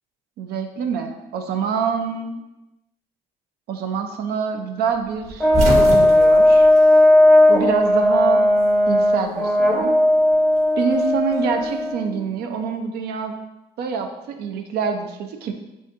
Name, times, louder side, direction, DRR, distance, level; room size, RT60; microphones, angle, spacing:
voice 1, 0.4-2.4 3.7-5.5 5.8-6.7 7.5-8.4 8.9-9.9 10.8-13.4 13.8-15.5, right 6 dB, 70° right, 5 dB, 0.6 m, -26 dB
sound 1, 5.2-7.8 8.0-9.1 10.3-11.8, right 1 dB, 40° right, 1.1 m, -27 dB
Brass instrument, 5.4-12.1, left 1 dB, 5° right, 0.7 m, -16 dB
6.9 x 2.5 x 2.5 m, 1.0 s
cardioid pair, 110°, 17 cm